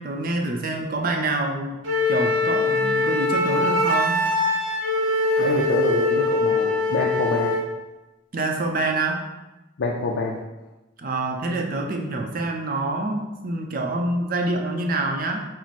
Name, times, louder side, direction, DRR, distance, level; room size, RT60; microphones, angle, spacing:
voice 1, 0.0-1.8 2.1-4.2 8.3-9.2 11.0-15.5, right 2 dB, 45° right, 2 dB, 0.5 m, -26 dB
Wind instrument woodwind instrument, 1.8-7.7, left 2 dB, 90° right, 0.8 m, -22 dB
voice 2, 5.4-7.7 9.8-10.4, left 3 dB, 70° left, -2 dB, 0.4 m, -26 dB
4.5 x 2.0 x 4.1 m, 1.1 s
head